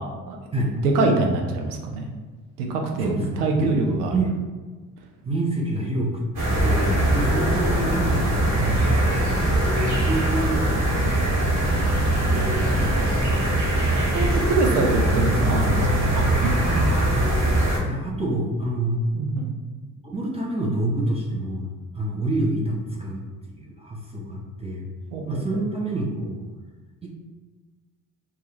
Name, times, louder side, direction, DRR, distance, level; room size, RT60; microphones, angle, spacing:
voice 1, 0.0-0.4 0.7-2.0 2.6-3.1 3.4-4.1 12.3-13.5 14.1-16.5 19.1-19.5 25.1-25.4, right 3 dB, 85° right, 2 dB, 0.6 m, -25 dB
voice 2, 3.0-3.7 4.1-4.4 5.2-6.1 6.6-9.5 9.8-12.3 16.6-17.5 17.8-19.0 20.0-21.7 21.9-23.2 23.6-24.8 25.3-26.5 27.0-27.1, right 1 dB, 15° right, -3 dB, 0.4 m, -28 dB
sound 1, 6.4-17.8, right 1 dB, 40° right, 1.2 m, -21 dB
2.3 x 2.2 x 3.0 m, 1.3 s
hypercardioid pair, 55°, 46 cm